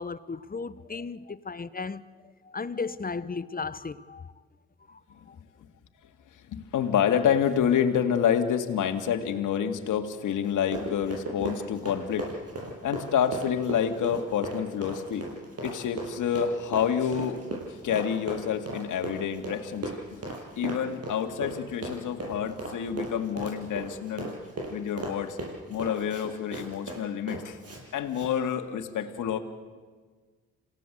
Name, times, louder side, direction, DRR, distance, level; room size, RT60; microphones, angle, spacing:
voice 1, 0.0-2.0 2.4-4.3 4.9-5.0 5.3-5.4, left 4 dB, 25° left, 1.1 m, -35 dB
voice 2, 6.5-12.3 12.8-15.3 15.6-17.4 17.8-19.9 20.6-24.3 24.7-25.4 25.7-27.6 27.9-29.4, left 8 dB, 70° left, 2.1 m, -28 dB
Run, 10.4-27.8 28.1-28.3, right 2 dB, 50° right, 7.8 m, -37 dB
27.5 x 17.0 x 7.9 m
hypercardioid pair, 50°, 32 cm